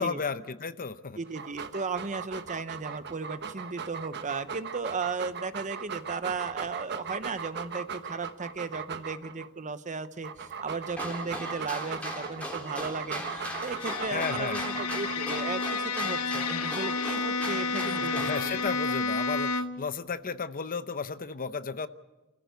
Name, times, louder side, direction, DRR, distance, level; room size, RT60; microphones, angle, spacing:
voice 1, 0.0-1.2 14.1-14.7 17.5-21.9, left 5 dB, 40° left, 12 dB, 0.8 m, -34 dB
voice 2, 1.2-18.6, right 4 dB, 35° right, 12 dB, 0.9 m, -35 dB
Dog, 1.3-9.5 10.1-15.5, right 6 dB, 50° right, 1.1 m, -39 dB
sound 1, 10.9-18.5, equal, 5° left, 3.3 m, -39 dB
Bowed string instrument, 13.4-19.9, left 4 dB, 80° left, 1.0 m, -31 dB
28.5 x 15.0 x 8.0 m, 1.1 s
head